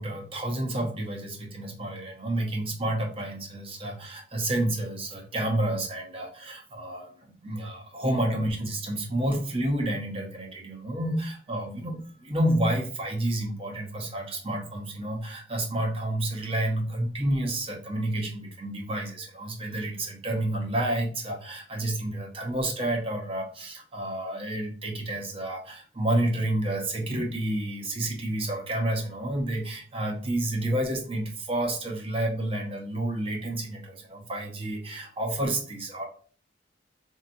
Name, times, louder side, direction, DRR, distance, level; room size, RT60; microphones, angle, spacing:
voice 1, 0.0-36.0, right 1 dB, 35° right, 1 dB, 0.9 m, -30 dB
4.0 x 2.9 x 2.6 m, 0.43 s
head